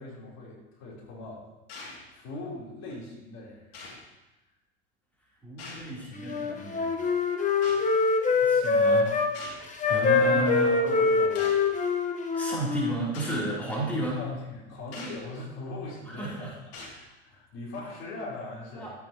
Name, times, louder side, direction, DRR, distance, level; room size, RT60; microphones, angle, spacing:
voice 1, 0.0-1.5 2.1-3.9 9.9-11.5 14.2-16.5 17.2-18.9, left 2 dB, 50° left, -4 dB, 3.8 m, -40 dB
sound 1, 1.7-2.0 2.9-3.0 3.7-4.1 5.6-6.0 7.6-7.8 9.3-9.7 10.6-10.7 11.3-11.7 12.3-12.4 13.1-13.4 14.9-15.2 15.9-16.1 16.7-17.0, left 3 dB, 70° left, 2.8 m, -43 dB
voice 2, 5.4-6.9 8.4-9.1 9.9-10.7 12.4-14.2 16.0-16.6 16.9-17.0 18.8-18.9, right 1 dB, 5° left, -6 dB, 3.4 m, -32 dB
Wind instrument woodwind instrument, 6.2-9.3 9.8-13.0, left 4 dB, 20° left, 1.2 m, -24 dB
12.5 x 8.4 x 3.0 m, 1.0 s
supercardioid pair, 105°, 34 cm